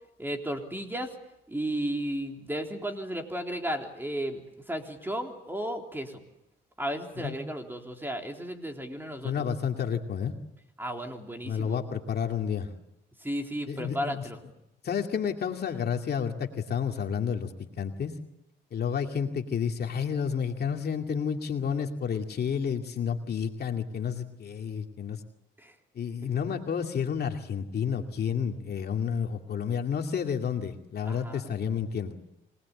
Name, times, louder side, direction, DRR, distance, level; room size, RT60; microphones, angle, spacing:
voice 1, 0.2-1.1 1.5-6.1 6.8-9.3 10.8-11.8 13.2-14.4 25.6-25.7 31.0-31.5, equal, 10° right, 3 dB, 3.7 m, -34 dB
voice 2, 9.2-10.3 11.4-12.7 13.7-14.2 14.8-17.5 17.8-18.1 18.7-25.2 25.9-32.1, left 7 dB, 55° left, 4 dB, 2.4 m, -30 dB
27.0 x 20.0 x 8.6 m, 0.87 s
cardioid pair, 90°, 20 cm